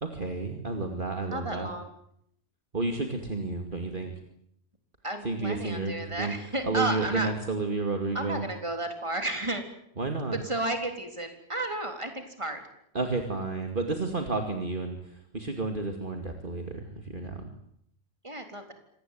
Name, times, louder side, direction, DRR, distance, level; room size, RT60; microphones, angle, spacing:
voice 1, 0.0-1.7 2.7-4.1 5.2-6.3 6.6-8.5 10.0-10.4 12.9-17.5, right 3 dB, 40° right, 5 dB, 2.6 m, -31 dB
voice 2, 1.3-1.9 5.0-7.3 8.1-9.6 10.4-12.6 18.2-18.7, right 2 dB, 25° right, 6 dB, 3.9 m, -32 dB
26.0 x 19.0 x 9.4 m, 0.72 s
omnidirectional pair, 1.3 m